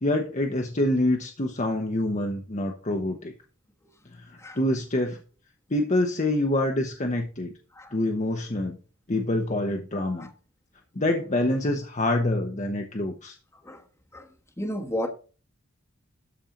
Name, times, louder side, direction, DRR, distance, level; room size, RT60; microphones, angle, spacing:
voice 1, 0.0-3.3 4.1-5.2 5.7-7.5 7.9-8.8 9.1-10.3 10.9-13.4, left 1 dB, 35° left, 1.0 m, -26 dB
voice 2, 14.6-15.1, equal, 15° left, 1.2 m, -32 dB
13.0 x 4.5 x 5.2 m
head